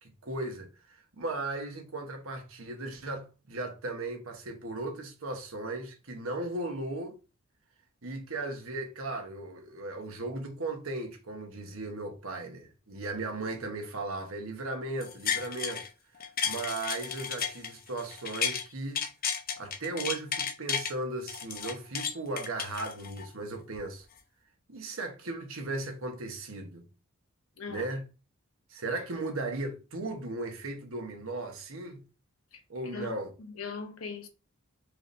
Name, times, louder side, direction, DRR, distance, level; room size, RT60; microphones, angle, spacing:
voice 1, 0.0-7.2 8.0-15.8 16.4-19.0 19.6-24.0 24.7-26.8 27.7-28.0 28.7-32.0 32.7-33.3, right 2 dB, 75° right, 1.1 m, -36 dB
sound 1, 15.0-15.9 16.2-18.6 18.9-20.9 21.3-23.3 23.7-23.8, left 7 dB, 45° left, 0.7 m, -33 dB
voice 2, 32.9-34.3, left 4 dB, 85° left, 0.9 m, -40 dB
4.7 x 3.3 x 2.6 m
head